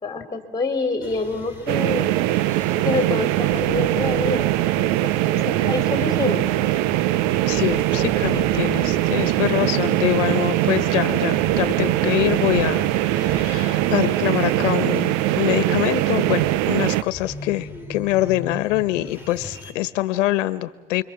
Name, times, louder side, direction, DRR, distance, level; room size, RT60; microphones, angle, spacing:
voice 1, 0.0-2.1 2.8-4.9 5.4-6.4, left 3 dB, 10° left, 7 dB, 3.3 m, -26 dB
sound 1, 1.0-19.7, left 2 dB, 5° right, 3.9 m, -38 dB
sound 2, 1.7-17.0, right 15 dB, 50° right, 0.8 m, -21 dB
voice 2, 7.5-21.0, left 16 dB, 90° left, 14 dB, 1.4 m, -24 dB
29.5 x 23.5 x 7.3 m, 1.2 s
supercardioid pair, 150°, 36 cm